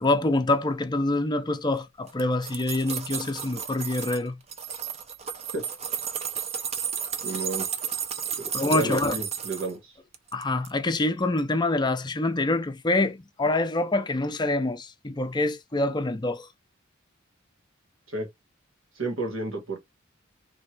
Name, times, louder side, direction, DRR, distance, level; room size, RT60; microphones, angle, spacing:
voice 1, 0.0-4.4 8.5-9.2 10.3-16.5, left 2 dB, 20° left, 0.5 m, -26 dB
sound 1, 2.1-4.2 4.5-9.7 10.1-10.7 11.0-11.1, right 7 dB, 30° right, 0.6 m, -33 dB
voice 2, 7.2-7.7 8.4-10.0 18.1-18.3 18.9-19.8, right 2 dB, 80° right, 1.7 m, -32 dB
3.4 x 3.1 x 4.4 m
head